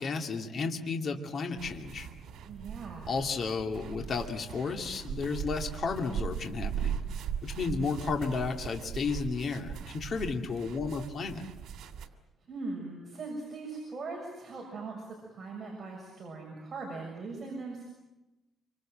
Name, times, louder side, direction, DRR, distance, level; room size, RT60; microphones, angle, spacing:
voice 1, 0.0-2.1 3.1-7.0 7.4-11.4, left 4 dB, 45° left, 3 dB, 2.5 m, -33 dB
sound 1, 1.6-12.1, right 8 dB, 85° right, 2.6 m, -39 dB
voice 2, 2.5-3.2 12.5-17.8, right 3 dB, 30° right, -1 dB, 6.5 m, -40 dB
27.5 x 25.5 x 7.6 m, 1.0 s
cardioid pair, 155°, 0 cm